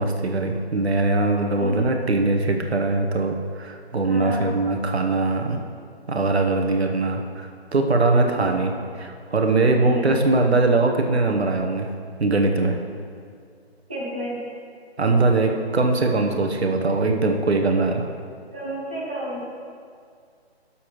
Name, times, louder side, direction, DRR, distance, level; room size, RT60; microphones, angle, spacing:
voice 1, 0.0-5.6 6.1-8.7 9.0-11.9 12.2-12.8 15.0-18.1, right 3 dB, 80° right, 3 dB, 1.1 m, -21 dB
voice 2, 1.6-2.0 4.0-4.5 8.3-8.8 9.8-10.2 13.9-14.4 18.5-19.5, equal, 10° right, -9 dB, 0.4 m, -32 dB
12.0 x 7.1 x 3.1 m, 2.2 s
figure-of-eight pair, 145°, 32 cm